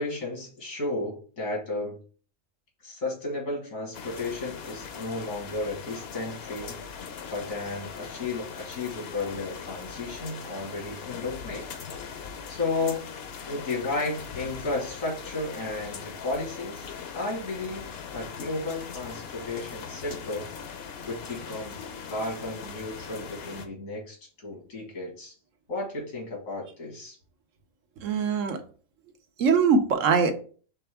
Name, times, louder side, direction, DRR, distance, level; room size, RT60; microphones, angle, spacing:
voice 1, 0.0-2.0 2.8-6.8 7.3-11.7 12.5-13.0 13.5-16.8 17.1-20.5 21.0-21.8 22.1-25.3 25.7-27.2, left 2 dB, 90° left, -1 dB, 2.1 m, -33 dB
sound 1, 3.9-23.7, left 6 dB, 60° left, 0.8 m, -40 dB
voice 2, 28.0-28.6 29.4-30.3, right 5 dB, 75° right, 7 dB, 1.1 m, -22 dB
4.5 x 3.4 x 3.4 m, 0.41 s
omnidirectional pair, 1.4 m